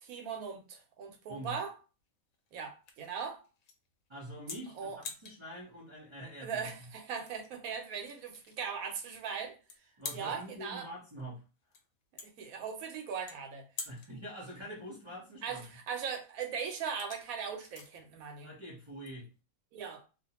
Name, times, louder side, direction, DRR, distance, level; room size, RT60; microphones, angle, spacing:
voice 1, 0.0-1.7 2.5-3.5 4.8-5.0 6.4-9.6 10.1-10.9 12.2-13.7 15.4-18.5 19.7-20.0, right 6 dB, 90° right, 1.1 m, -39 dB
sound 1, 0.6-19.4, left 5 dB, 90° left, 1.1 m, -50 dB
voice 2, 4.1-4.9 5.2-6.6 10.0-11.4 13.9-15.7 18.4-19.3, equal, 30° right, 0.6 m, -45 dB
2.5 x 2.1 x 2.8 m
omnidirectional pair, 1.4 m